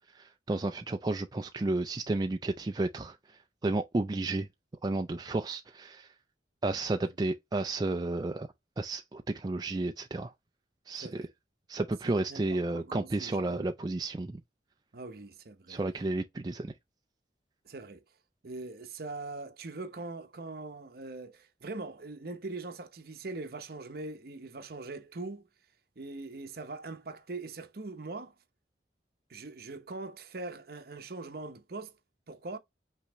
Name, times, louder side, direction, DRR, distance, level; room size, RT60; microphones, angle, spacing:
voice 1, 0.1-4.5 4.8-6.1 6.6-8.5 8.8-10.3 10.9-11.3 11.7-14.4 15.7-16.7, right 2 dB, 25° right, 0.3 m, -32 dB
voice 2, 12.0-13.7 14.9-15.8 17.6-18.0 18.4-25.5 26.0-28.3 29.3-32.0 32.3-32.6, right 3 dB, 60° right, 0.8 m, -42 dB
5.7 x 2.9 x 3.1 m
head